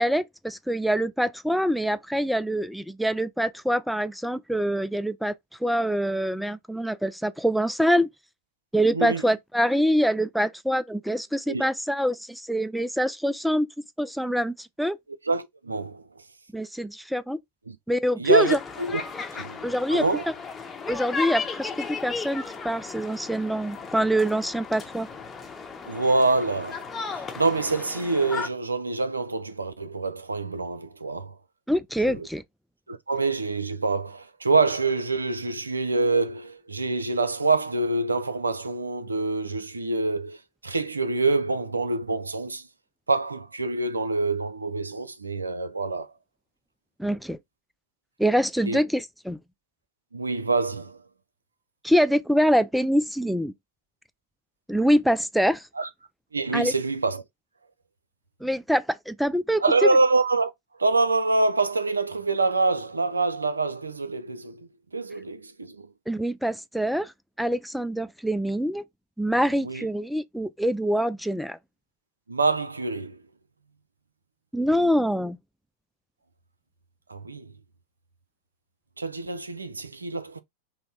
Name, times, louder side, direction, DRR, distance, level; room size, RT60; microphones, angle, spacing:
voice 1, 0.0-5.3 5.6-8.1 8.7-13.7 14.0-15.0 16.5-17.4 17.9-18.6 19.6-20.0 20.9-25.1 31.7-32.4 47.0-47.4 48.2-49.4 51.8-53.5 54.7-55.6 56.5-56.7 58.4-59.6 66.1-67.1 67.4-68.8 69.2-71.6 74.5-75.4, equal, ahead, 0.3 m, -25 dB
voice 2, 15.3-16.0 17.7-17.8 18.2-19.0 19.3-19.6 19.9-20.3 25.9-26.8 27.1-31.3 32.0-32.3 32.9-40.4 40.6-42.6 43.1-46.1 48.7-48.8 50.1-51.0 55.8-55.9 56.3-57.2 59.6-60.5 60.8-64.6 64.9-65.8 69.6-69.9 72.3-73.2 77.1-77.5 79.0-80.4, right 3 dB, 80° right, 0.5 m, -25 dB
sound 1, 18.4-28.5, left 5 dB, 15° left, 0.9 m, -35 dB
5.5 x 2.1 x 4.1 m
figure-of-eight pair, 90°, 0 cm